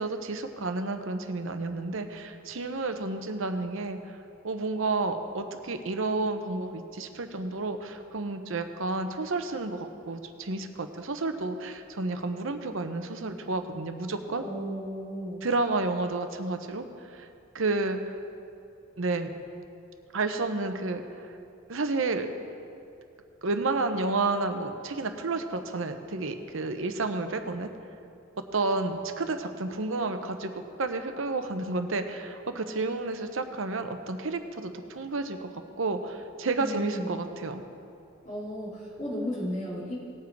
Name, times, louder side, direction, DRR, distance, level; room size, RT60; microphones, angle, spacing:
voice 1, 0.0-4.2 4.4-14.4 15.4-16.9 17.1-17.3 17.5-18.1 19.0-19.3 20.1-21.3 21.7-22.3 23.4-27.7 28.5-37.6, right 3 dB, 65° right, 7 dB, 0.9 m, -31 dB
voice 2, 14.4-15.5 36.6-37.1 38.2-40.0, equal, 40° left, -7 dB, 3.5 m, -34 dB
19.0 x 7.4 x 4.7 m, 2.6 s
head